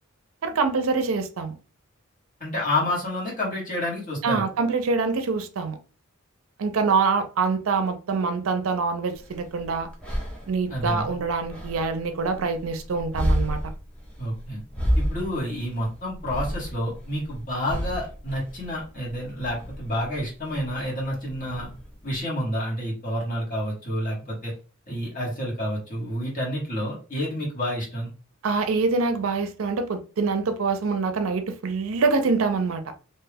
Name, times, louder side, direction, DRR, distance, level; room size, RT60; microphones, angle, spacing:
voice 1, 0.4-1.6 4.2-5.8 6.6-9.9 10.5-13.6 28.4-32.9, right 4 dB, 75° right, 0.5 m, -25 dB
voice 2, 2.4-4.5 10.7-11.1 14.2-14.6 14.9-21.7 22.0-24.5 24.9-28.1, left 1 dB, 40° left, 1.4 m, -29 dB
sound 1, 9.1-22.2, equal, 5° left, 0.6 m, -32 dB
2.7 x 2.2 x 3.3 m
head